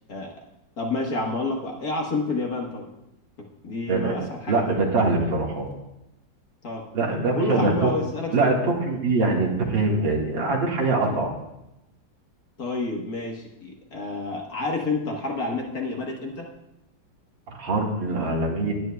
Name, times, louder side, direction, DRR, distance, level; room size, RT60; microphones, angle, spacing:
voice 1, 0.8-2.9 3.6-4.8 6.6-6.8 7.3-8.5 12.6-16.5, left 2 dB, 50° left, 0 dB, 1.7 m, -29 dB
voice 2, 4.5-5.7 6.9-7.9 8.3-11.3 17.5-18.7, right 3 dB, 70° right, -1 dB, 2.4 m, -23 dB
19.5 x 9.2 x 2.3 m, 0.89 s
omnidirectional pair, 2.2 m